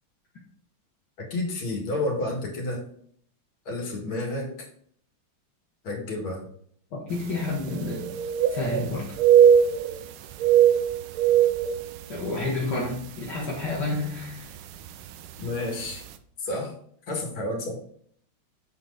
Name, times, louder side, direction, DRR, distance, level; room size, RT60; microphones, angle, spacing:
voice 1, 1.2-2.8 3.7-4.5 5.8-6.4 15.4-16.0 16.4-16.7 17.1-17.8, left 2 dB, 75° left, 0 dB, 2.7 m, -30 dB
voice 2, 7.1-8.1 8.5-9.1 12.1-14.5 16.5-16.6, left 2 dB, 60° left, -5 dB, 2.0 m, -30 dB
sound 1, 7.2-7.3 7.6-8.9 9.2-10.1 10.3-12.5 12.9-13.1 13.7-14.0 15.0-15.1 15.5-15.6, right 9 dB, 90° right, 1.5 m, -20 dB
7.6 x 4.5 x 3.9 m, 0.63 s
omnidirectional pair, 2.3 m